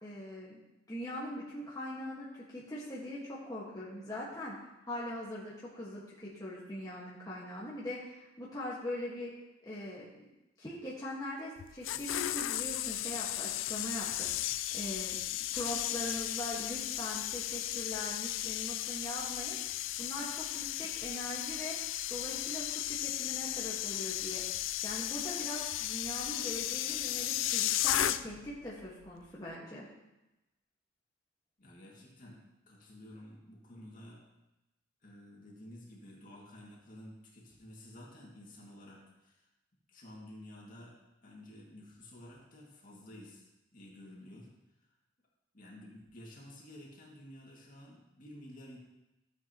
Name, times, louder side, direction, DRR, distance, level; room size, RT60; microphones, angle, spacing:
voice 1, 0.0-0.6 0.9-4.5 4.8-9.3 9.6-10.1 10.6-15.2 15.5-21.7 22.1-24.4 24.8-29.9, left 1 dB, 20° left, -7 dB, 1.5 m, -41 dB
sound 1, 11.6-28.5 28.8-29.1, left 13 dB, 90° left, 0.4 m, -35 dB
voice 2, 31.6-32.4 32.7-34.2 35.0-39.5 39.9-41.0 41.2-44.5 45.5-48.8, left 1 dB, 45° left, -3 dB, 2.1 m, -52 dB
13.5 x 7.8 x 2.9 m, 0.97 s
head